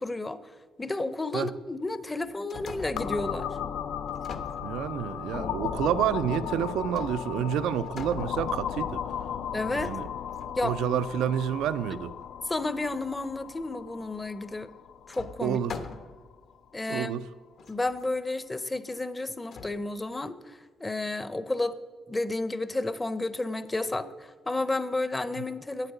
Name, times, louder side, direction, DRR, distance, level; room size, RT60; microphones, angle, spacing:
voice 1, 0.0-3.6 9.5-9.9 10.6-10.8 12.4-14.7 15.1-15.6 16.7-17.3 17.7-21.8 22.1-25.9, left 2 dB, 20° left, 0.6 m, -31 dB
sound 1, 2.2-3.2 4.1-5.2 6.9-7.5 7.8-8.9 9.7-10.6 14.1-14.2 15.1-16.3 17.0-17.1 17.6-18.1 19.5-19.8, left 5 dB, 60° left, 0.8 m, -43 dB
sound 2, 3.0-16.5, left 8 dB, 75° left, 0.4 m, -36 dB
voice 2, 4.6-9.0 9.7-10.0 10.6-12.1 15.4-15.8 16.9-17.2, right 9 dB, 85° right, 0.3 m, -29 dB
8.9 x 8.1 x 5.5 m
cardioid pair, 90°, 0 cm